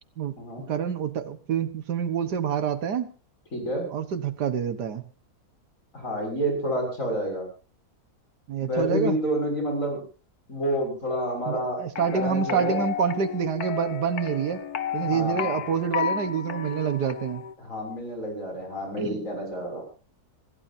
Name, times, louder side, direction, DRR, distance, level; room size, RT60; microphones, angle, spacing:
voice 1, 0.7-3.1 3.9-5.0 8.5-9.2 11.5-14.6 14.9-17.5 19.0-19.2, right 7 dB, 85° right, 11 dB, 1.9 m, -27 dB
voice 2, 3.5-3.9 5.9-7.5 8.6-10.0 10.5-11.8 12.1-12.8 15.0-15.6 17.6-19.8, equal, 50° left, 2 dB, 7.3 m, -29 dB
sound 1, 12.0-17.5, left 8 dB, 70° left, 1.5 m, -32 dB
26.5 x 15.5 x 2.8 m, 0.36 s
omnidirectional pair, 1.7 m